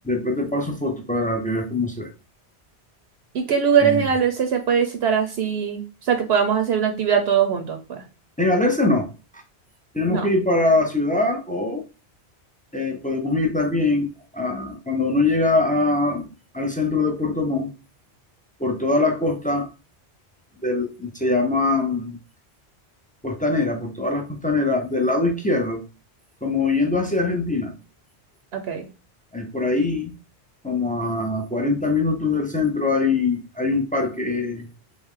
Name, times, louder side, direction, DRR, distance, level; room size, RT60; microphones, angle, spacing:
voice 1, 0.0-2.1 3.8-4.1 8.4-9.1 9.3-9.4 9.9-11.8 12.7-16.3 16.5-17.7 18.6-19.7 20.6-22.2 23.2-25.8 26.4-27.7 29.3-30.1 30.6-34.7, left 2 dB, 10° left, 2 dB, 0.4 m, -23 dB
voice 2, 3.3-8.0 10.0-10.3 28.5-28.9, right 7 dB, 70° right, 6 dB, 0.8 m, -21 dB
3.5 x 3.1 x 3.6 m, 0.32 s
omnidirectional pair, 1.1 m